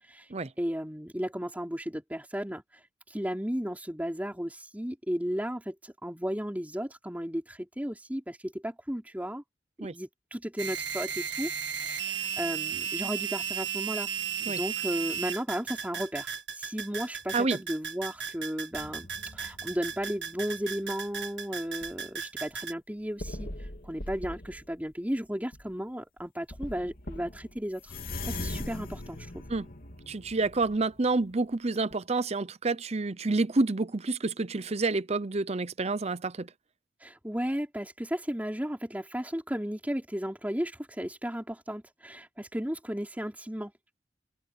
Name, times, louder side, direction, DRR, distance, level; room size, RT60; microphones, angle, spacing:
voice 1, 0.6-2.6 3.1-9.4 9.8-14.1 14.5-23.5 23.8-28.0 28.2-29.4 37.0-43.7, equal, 10° right, 3.9 m, -34 dB
sound 1, 10.6-22.7, right 8 dB, 90° right, 1.6 m, -35 dB
sound 2, 18.7-20.8 21.4-22.0 22.5-22.6 23.2-24.8 25.5-25.7 26.2-26.3 26.5-31.6 31.9-32.0, left 1 dB, 55° left, 2.8 m, -41 dB
voice 2, 30.1-36.5, right 3 dB, 35° right, 0.7 m, -28 dB
head